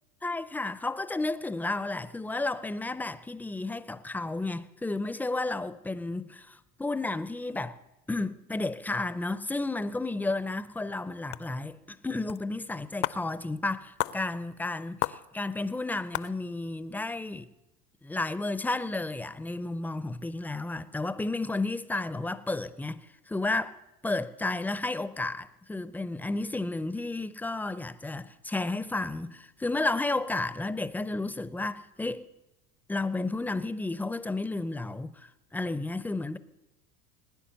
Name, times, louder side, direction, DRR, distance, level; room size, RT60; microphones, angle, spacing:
voice 1, 0.2-7.8 8.1-17.5 18.0-23.8 24.0-32.3 32.9-36.4, left 2 dB, 5° left, 0.4 m, -32 dB
sound 1, 11.3-11.5 12.3-12.4 12.7-12.8 13.0-13.2 14.0-14.2 15.0-15.2 15.8-15.9 16.1-16.3, left 17 dB, 60° left, 0.7 m, -31 dB
20.5 x 10.0 x 6.9 m
hypercardioid pair, 85°, 48 cm